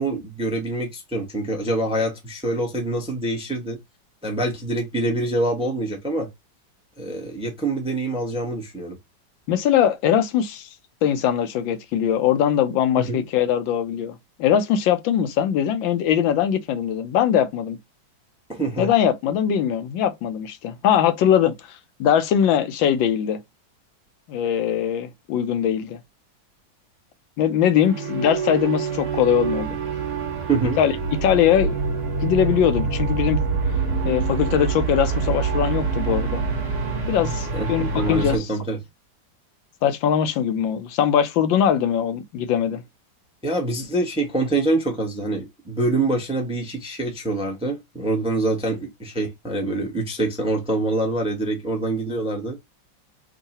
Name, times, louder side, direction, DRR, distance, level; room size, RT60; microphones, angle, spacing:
voice 1, 0.0-3.8 4.2-6.3 7.0-9.0 13.0-13.2 18.5-18.9 30.5-30.8 37.5-38.8 43.4-52.6, right 2 dB, 5° right, 0.6 m, -25 dB
voice 2, 9.5-10.7 11.0-17.8 18.8-23.4 24.3-26.0 27.4-29.8 30.8-30.9 31.2-31.8 32.2-33.4 34.0-36.4 37.1-38.5 39.8-42.8, left 9 dB, 85° left, 1.4 m, -21 dB
sound 1, 27.8-38.4, right 5 dB, 45° right, 1.4 m, -26 dB
3.7 x 2.3 x 4.1 m
omnidirectional pair, 2.1 m